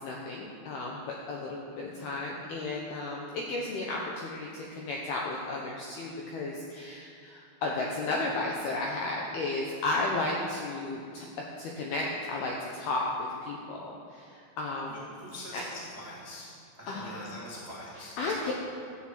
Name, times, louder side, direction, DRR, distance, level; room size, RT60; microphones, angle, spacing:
voice 1, 0.0-11.3 11.6-13.1 13.4-14.2 14.6-15.0 15.5-15.6 16.9-17.1 18.2-18.5, left 2 dB, 75° left, -1 dB, 2.3 m, -33 dB
voice 2, 14.9-16.5 16.8-18.5, left 1 dB, 30° right, -7 dB, 1.2 m, -43 dB
14.0 x 8.0 x 7.6 m, 2.4 s
omnidirectional pair, 5.9 m